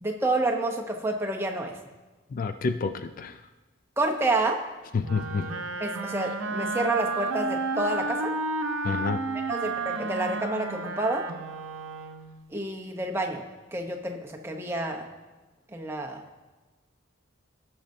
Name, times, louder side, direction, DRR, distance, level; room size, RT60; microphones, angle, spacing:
voice 1, 0.0-1.8 4.0-4.6 5.8-8.3 9.5-11.2 12.5-13.4 13.7-15.1 15.7-16.2, right 2 dB, 10° right, 1 dB, 0.7 m, -29 dB
voice 2, 2.3-3.3 4.9-5.5 8.8-9.2, left 4 dB, 40° left, 9 dB, 0.3 m, -28 dB
Wind instrument woodwind instrument, 5.0-12.4, right 3 dB, 75° right, 0.7 m, -32 dB
16.5 x 6.3 x 2.7 m, 1.2 s
head